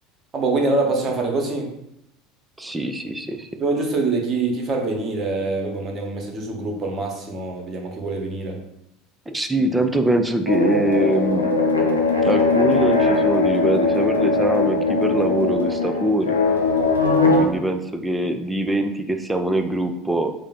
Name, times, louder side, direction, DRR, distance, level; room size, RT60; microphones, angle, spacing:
voice 1, 0.3-1.7 3.6-8.6, right 3 dB, 35° right, 1 dB, 0.9 m, -24 dB
voice 2, 2.6-3.5 9.3-11.5 12.2-16.4 17.4-20.3, right 1 dB, 10° right, 6 dB, 0.4 m, -23 dB
sound 1, 10.5-17.5, left 3 dB, 85° left, 0.3 m, -20 dB
3.6 x 2.1 x 3.5 m, 0.82 s
figure-of-eight pair, 70°, 0 cm